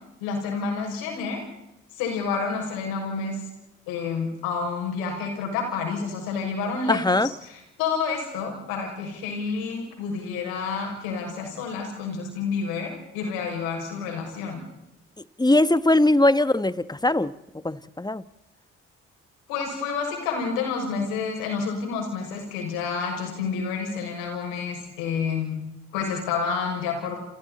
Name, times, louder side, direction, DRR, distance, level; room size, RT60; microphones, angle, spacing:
voice 1, 0.2-1.4 1.9-3.4 3.9-14.6 19.5-25.6 25.9-27.2, left 5 dB, 85° left, 2 dB, 6.6 m, -29 dB
voice 2, 6.9-7.3 15.4-17.3 17.6-18.2, left 1 dB, 10° left, 15 dB, 1.3 m, -20 dB
29.5 x 29.5 x 4.2 m, 0.88 s
hypercardioid pair, 45°, 34 cm